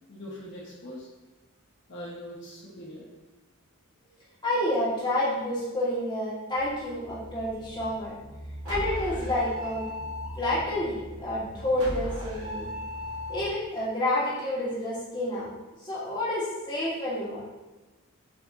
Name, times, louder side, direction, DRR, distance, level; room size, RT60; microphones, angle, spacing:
voice 1, 0.1-1.1 1.9-3.0 4.0-4.1, equal, 60° left, -6 dB, 1.6 m, -42 dB
voice 2, 4.4-8.1 8.6-9.8 10.4-12.7 13.3-15.5 15.8-17.4, left 1 dB, 20° left, -8 dB, 2.2 m, -29 dB
sound 1, 6.6-13.5, equal, 70° right, 2.2 m, -38 dB
7.9 x 5.3 x 2.9 m, 1.1 s
head